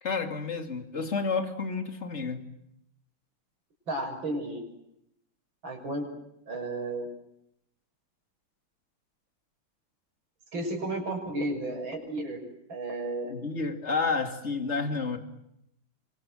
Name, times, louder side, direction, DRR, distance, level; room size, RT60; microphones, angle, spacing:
voice 1, 0.0-2.4 13.3-15.2, left 4 dB, 30° left, 7 dB, 2.9 m, -30 dB
voice 2, 3.9-4.6 5.6-6.1 6.5-7.0 10.5-12.4 12.7-13.3, right 2 dB, 65° right, 2 dB, 7.1 m, -33 dB
28.5 x 25.0 x 7.8 m, 0.78 s
omnidirectional pair, 2.3 m